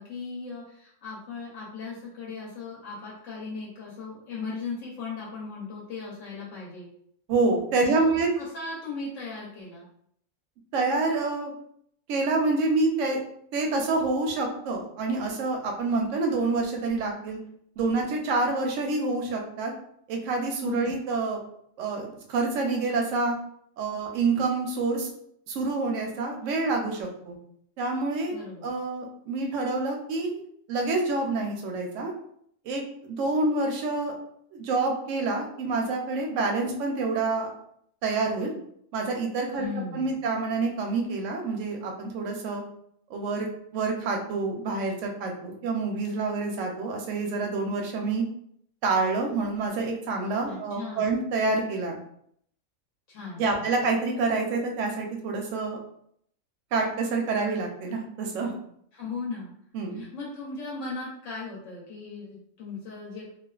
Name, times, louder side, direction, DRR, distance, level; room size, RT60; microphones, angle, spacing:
voice 1, 0.0-6.9 7.8-9.9 20.6-21.0 28.3-28.7 39.5-40.2 50.4-51.2 53.1-53.7 58.9-59.5 59.9-63.3, left 4 dB, 65° left, -5 dB, 0.9 m, -37 dB
voice 2, 7.3-8.3 10.7-11.5 12.1-13.2 13.5-17.4 17.8-19.7 20.1-21.4 21.8-23.3 23.8-25.1 25.5-27.4 27.8-28.3 28.6-30.4 30.7-32.1 32.6-34.1 34.5-37.5 38.0-38.5 38.9-39.7 39.9-42.6 43.1-48.2 48.8-52.0 53.4-55.8 56.7-58.5 59.7-60.0, right 3 dB, 70° right, 1 dB, 0.8 m, -27 dB
2.4 x 2.3 x 2.3 m, 0.69 s
omnidirectional pair, 1.5 m